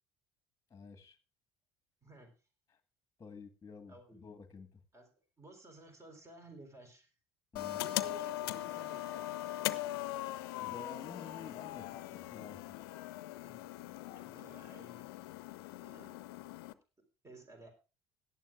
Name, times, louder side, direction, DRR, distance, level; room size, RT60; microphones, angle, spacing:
voice 1, 0.7-1.2 3.2-4.8 7.5-8.1 10.6-12.6, left 5 dB, 20° left, 7 dB, 1.7 m, -51 dB
voice 2, 2.0-2.3 3.9-4.2 4.9-5.1 5.4-7.1 7.8-9.3 13.4-15.1 15.8-16.1 17.2-17.7, right 1 dB, 25° right, 5 dB, 3.9 m, -55 dB
sound 1, 7.6-16.7, left 15 dB, 70° left, 0.6 m, -40 dB
17.5 x 11.5 x 2.4 m, 0.32 s
figure-of-eight pair, 60°, 13 cm